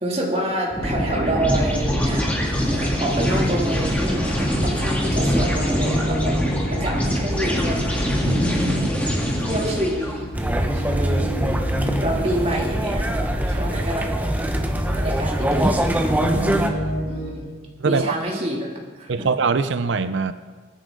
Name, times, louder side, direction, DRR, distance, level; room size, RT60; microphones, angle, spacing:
voice 1, 0.0-2.2 2.7-6.3 6.7-7.8 8.7-9.2 9.5-10.3 10.7-11.4 12.0-14.4 14.9-16.0 17.1-18.6 19.0-19.3, right 1 dB, 35° right, -2 dB, 2.7 m, -28 dB
sound 1, 0.7-10.2, equal, 10° left, 2.3 m, -23 dB
sound 2, 0.9-17.4, equal, 60° left, 3.6 m, -32 dB
voice 2, 8.2-8.9 16.2-16.9 17.8-18.2 19.1-20.3, right 4 dB, 80° right, 12 dB, 0.5 m, -24 dB
sound 3, 10.3-16.7, right 1 dB, 10° right, 0.9 m, -23 dB
23.0 x 10.0 x 3.9 m, 1.4 s
head